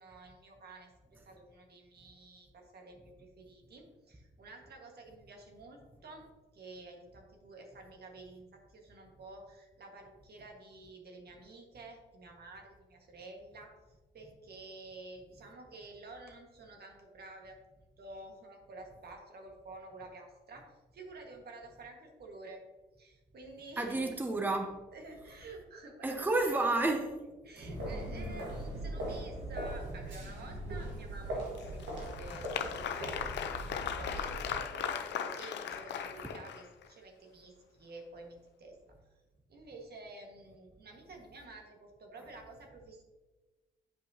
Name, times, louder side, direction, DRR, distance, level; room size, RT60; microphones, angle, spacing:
voice 1, 0.0-6.3 6.5-13.7 14.1-17.6 18.0-20.7 20.9-22.6 23.0-24.0 24.9-26.6 27.4-33.5 33.9-38.8 39.5-43.0, right 2 dB, 60° right, 1.6 m, -50 dB
voice 2, 23.8-24.8 26.0-27.2, right 2 dB, 10° right, 0.7 m, -30 dB
sound 1, 27.6-34.6, right 1 dB, 85° right, 1.7 m, -40 dB
Applause, 31.6-36.9, left 8 dB, 75° left, 0.6 m, -38 dB
9.1 x 5.2 x 2.8 m
supercardioid pair, 60°, 19 cm